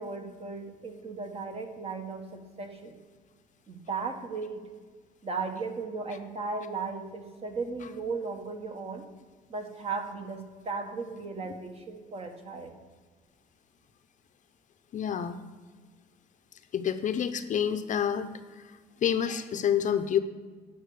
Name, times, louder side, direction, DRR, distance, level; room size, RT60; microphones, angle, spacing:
voice 1, 0.0-3.0 3.7-4.7 5.2-9.1 9.5-12.8, right 4 dB, 35° right, 5 dB, 1.5 m, -36 dB
voice 2, 14.9-15.4 16.7-18.3 19.0-20.2, left 8 dB, 45° left, 9 dB, 0.7 m, -27 dB
10.0 x 6.0 x 6.5 m, 1.5 s
cardioid pair, 110°, 17 cm